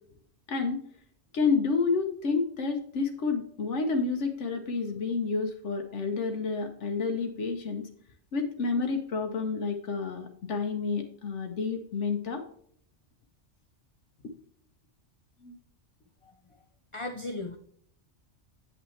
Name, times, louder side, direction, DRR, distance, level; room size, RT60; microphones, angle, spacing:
voice 1, 0.5-0.8 1.3-7.8 8.3-12.4 15.4-15.6, left 4 dB, 80° left, 5 dB, 1.2 m, -29 dB
voice 2, 16.9-17.6, left 2 dB, 35° left, 5 dB, 0.6 m, -36 dB
8.2 x 7.4 x 3.2 m, 0.63 s
omnidirectional pair, 1.2 m